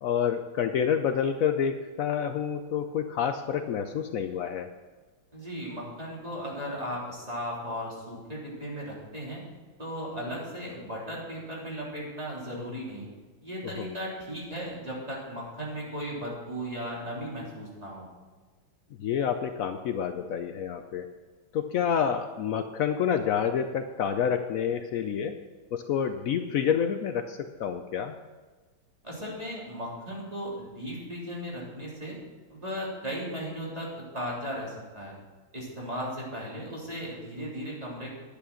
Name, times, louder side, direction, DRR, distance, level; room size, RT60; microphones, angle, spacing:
voice 1, 0.0-4.7 13.6-13.9 19.0-21.1 21.5-25.4 25.7-28.2, left 8 dB, 85° left, 8 dB, 0.7 m, -28 dB
voice 2, 5.3-9.4 9.8-13.1 13.4-18.1 29.0-32.2 32.5-35.1 35.5-38.1, equal, 20° right, -5 dB, 3.5 m, -36 dB
11.5 x 8.5 x 6.3 m, 1.4 s
omnidirectional pair, 2.1 m